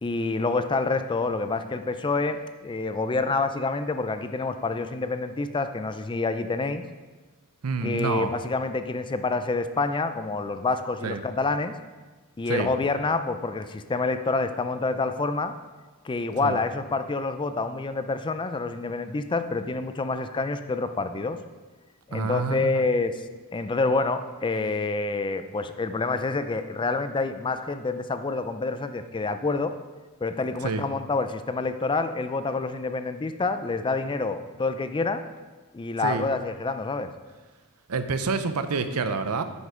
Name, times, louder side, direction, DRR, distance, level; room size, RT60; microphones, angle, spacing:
voice 1, 0.0-6.8 7.8-11.7 12.4-15.5 16.0-21.4 22.1-23.2 23.5-29.7 30.2-35.2 35.7-37.1, left 3 dB, 20° left, 10 dB, 0.4 m, -27 dB
voice 2, 7.6-8.3 11.0-11.2 12.5-12.7 16.4-16.6 22.1-22.9 30.6-30.9 36.0-36.3 37.9-39.4, right 4 dB, 80° right, 10 dB, 0.7 m, -28 dB
9.6 x 5.3 x 5.0 m, 1.3 s
head